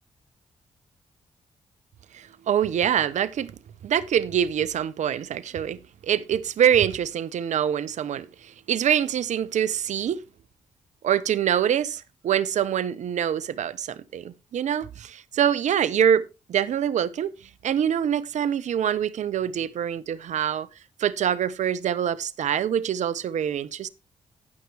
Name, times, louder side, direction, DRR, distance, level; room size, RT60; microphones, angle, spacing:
voice 1, 2.1-3.6 3.8-10.2 11.0-17.3 17.6-20.7 21.0-23.9, right 9 dB, 70° right, 0.7 m, -25 dB
16.0 x 5.9 x 3.4 m
supercardioid pair, 45°, 13 cm